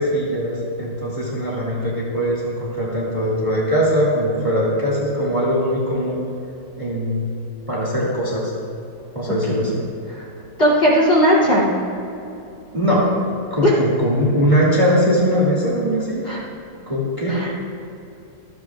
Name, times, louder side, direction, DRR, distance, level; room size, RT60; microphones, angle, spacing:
voice 1, 0.0-6.2 6.8-7.3 7.7-8.5 9.1-9.8 12.7-13.1 13.5-16.2 16.9-17.4, equal, 20° right, -5 dB, 2.1 m, -21 dB
voice 2, 10.6-11.7 13.6-13.7 16.2-16.4 17.3-17.5, equal, 35° left, -6 dB, 3.0 m, -17 dB
26.0 x 9.1 x 2.4 m, 2.8 s
omnidirectional pair, 1.8 m